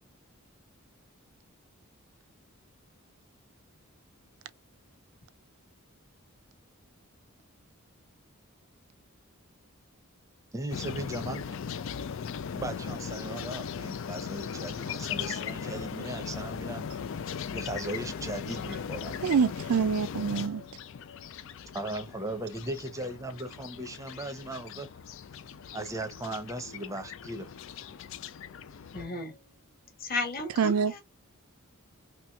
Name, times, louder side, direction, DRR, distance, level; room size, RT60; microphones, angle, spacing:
voice 1, 10.5-11.5 11.8-11.9 12.5-16.9 17.5-19.2 21.7-24.9 25.7-27.5, right 1 dB, 15° right, 0.6 m, -37 dB
sound 1, 10.7-29.1, left 7 dB, 60° left, 0.4 m, -38 dB
voice 2, 19.2-20.6 30.6-31.0, right 6 dB, 75° right, 0.4 m, -26 dB
voice 3, 28.9-29.4 30.0-31.0, left 2 dB, 40° left, 1.1 m, -34 dB
3.2 x 2.9 x 2.2 m
head